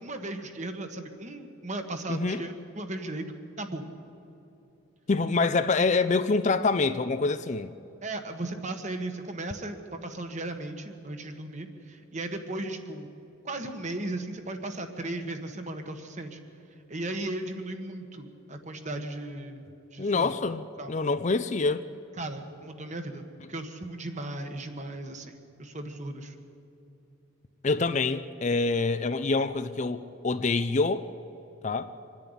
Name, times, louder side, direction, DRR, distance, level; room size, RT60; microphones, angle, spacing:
voice 1, 0.0-3.2 3.6-3.8 8.0-13.1 13.4-16.4 16.9-19.6 19.9-20.3 20.8-20.9 22.2-26.3, right 2 dB, 35° right, 6 dB, 1.5 m, -36 dB
voice 2, 2.1-2.4 5.1-7.7 20.0-21.9 27.6-31.1 31.6-31.9, left 3 dB, 35° left, 12 dB, 0.5 m, -26 dB
25.5 x 10.5 x 9.9 m, 3.0 s
head